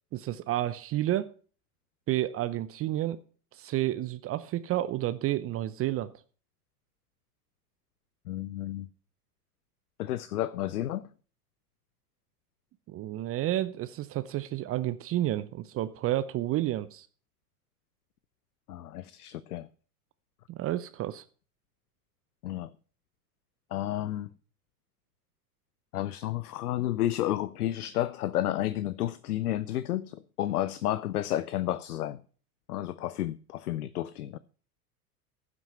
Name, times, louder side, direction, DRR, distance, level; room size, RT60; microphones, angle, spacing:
voice 1, 0.1-1.3 2.1-3.2 3.6-6.1 12.9-17.1 20.5-21.2, right 14 dB, 30° right, 0.6 m, -30 dB
voice 2, 8.3-8.9 10.0-11.1 18.7-19.7 22.4-22.7 23.7-24.3 25.9-32.2 32.7-34.4, left 13 dB, 75° left, 0.7 m, -31 dB
15.0 x 6.1 x 5.6 m
hypercardioid pair, 90°, 46 cm